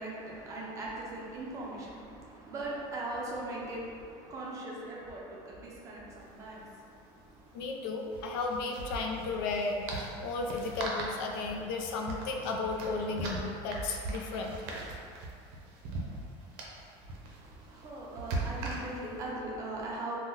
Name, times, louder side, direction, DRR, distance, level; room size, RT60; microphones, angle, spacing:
voice 1, 0.0-7.7 17.0-20.2, right 2 dB, 30° right, -4 dB, 0.5 m, -40 dB
sound 1, 6.1-6.2 6.4-6.5 8.0-19.2, right 2 dB, 70° right, 0.6 m, -40 dB
voice 2, 7.5-14.6, left 3 dB, 80° left, 1 dB, 0.4 m, -34 dB
2.8 x 2.2 x 3.6 m, 2.4 s
cardioid pair, 165°, 12 cm